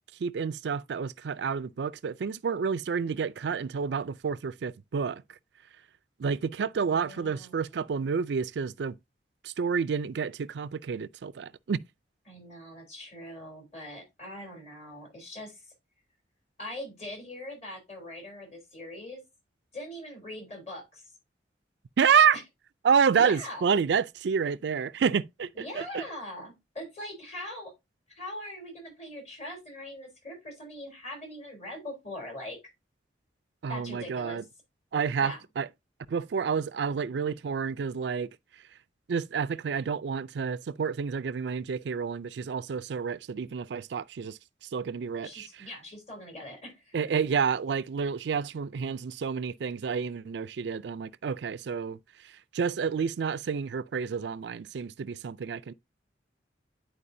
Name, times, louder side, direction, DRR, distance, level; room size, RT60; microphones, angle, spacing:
voice 1, 0.2-5.2 6.2-9.0 9.4-11.8 22.0-22.4 22.8-25.5 25.8-26.0 33.6-34.4 34.9-35.7 36.1-38.3 39.1-44.4 44.7-45.5 46.9-52.0 52.5-55.7, right 6 dB, 70° right, 0.4 m, -29 dB
voice 2, 6.8-7.8 12.3-15.6 16.6-19.2 19.7-21.0 22.3-22.4 23.1-23.6 25.5-27.7 28.1-32.6 33.7-34.4 35.2-35.4 45.2-47.0, left 1 dB, 40° left, 3.4 m, -42 dB
10.0 x 4.6 x 2.7 m
head